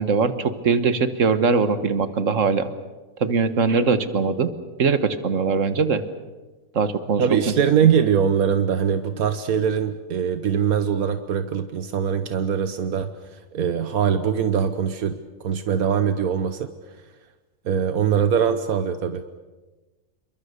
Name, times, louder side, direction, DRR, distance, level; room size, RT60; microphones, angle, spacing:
voice 1, 0.0-2.7 3.2-4.5 4.8-6.0 6.8-7.2, right 5 dB, 60° right, 11 dB, 1.7 m, -21 dB
voice 2, 7.2-15.1 15.4-16.7 17.6-19.2, right 8 dB, 85° right, 9 dB, 1.5 m, -22 dB
28.0 x 23.0 x 6.8 m, 1.2 s
omnidirectional pair, 1.5 m